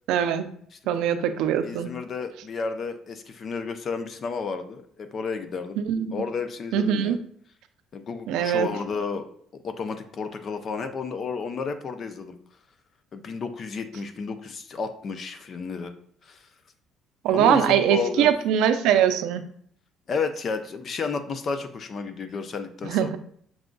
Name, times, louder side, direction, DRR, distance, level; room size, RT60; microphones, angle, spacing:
voice 1, 0.1-0.5 0.9-1.9 5.9-6.1 6.7-7.2 8.3-8.7 17.2-19.4 22.8-23.2, right 9 dB, 75° right, 9 dB, 0.4 m, -22 dB
voice 2, 0.7-1.0 1.6-5.8 6.1-7.2 7.9-9.2 9.6-12.4 13.1-15.9 16.2-16.5 17.3-18.3 20.1-23.1, left 5 dB, 30° left, 9 dB, 0.4 m, -32 dB
6.0 x 2.2 x 3.8 m, 0.62 s
cardioid pair, 170°, 0 cm